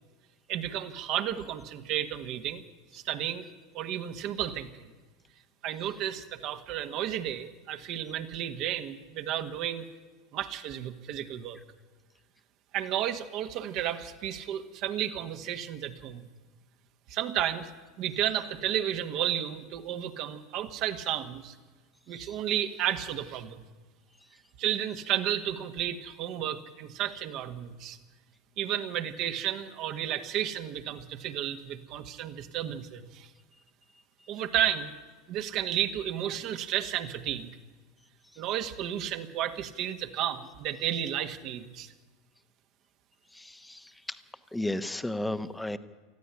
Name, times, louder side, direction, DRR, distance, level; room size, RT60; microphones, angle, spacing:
voice 1, 0.5-2.6 2.9-3.4 3.7-4.9 5.6-9.9 10.3-11.6 12.7-16.2 17.1-17.7 18.0-21.5 22.1-23.6 24.6-28.0 28.6-33.3 34.3-34.9 35.3-37.5 38.4-41.9, right 11 dB, 50° right, 7 dB, 1.6 m, -32 dB
voice 2, 43.3-44.2 44.5-45.8, left 1 dB, 5° left, 11 dB, 1.1 m, -34 dB
19.5 x 14.0 x 9.9 m, 1.3 s
hypercardioid pair, 80°, 0 cm